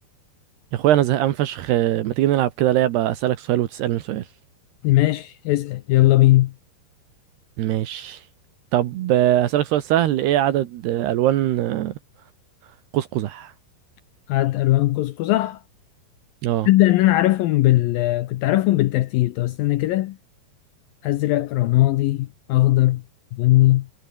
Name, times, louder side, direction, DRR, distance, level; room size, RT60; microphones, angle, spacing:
voice 1, 0.7-4.2 7.6-8.2 8.7-11.9 12.9-13.5 16.4-16.7, right 13 dB, 75° right, 3.2 m, -21 dB
voice 2, 4.8-6.5 14.3-15.6 16.7-20.2 21.0-23.0 23.3-23.9, left 16 dB, 80° left, 2.1 m, -19 dB
omnidirectional pair, 5.0 m